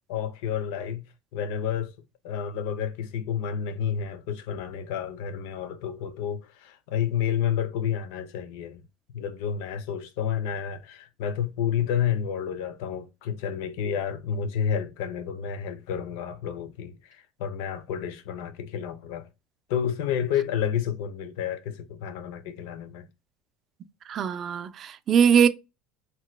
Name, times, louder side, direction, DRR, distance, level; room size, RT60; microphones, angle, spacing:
voice 1, 0.1-1.0 1.3-1.9 2.2-8.8 9.1-19.3 19.7-23.1, left 8 dB, 80° left, 0.6 m, -30 dB
voice 2, 24.1-25.5, right 7 dB, 30° right, 0.3 m, -21 dB
2.9 x 2.2 x 3.1 m
cardioid pair, 155°, 0 cm